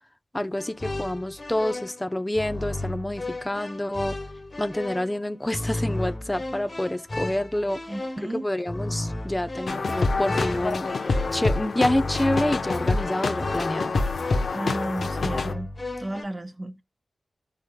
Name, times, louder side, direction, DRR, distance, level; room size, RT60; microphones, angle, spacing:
voice 1, 0.3-4.2 4.6-7.8 8.2-10.9 11.3-13.9, left 1 dB, 15° left, 0.6 m, -28 dB
sound 1, 0.6-16.2, left 2 dB, 40° left, 1.8 m, -34 dB
voice 2, 7.9-8.4 14.5-15.7 16.0-16.8, right 1 dB, 30° right, 1.1 m, -33 dB
sound 2, 9.7-15.5, left 3 dB, 70° left, 0.9 m, -26 dB
13.5 x 4.9 x 2.2 m
cardioid pair, 65°, 0 cm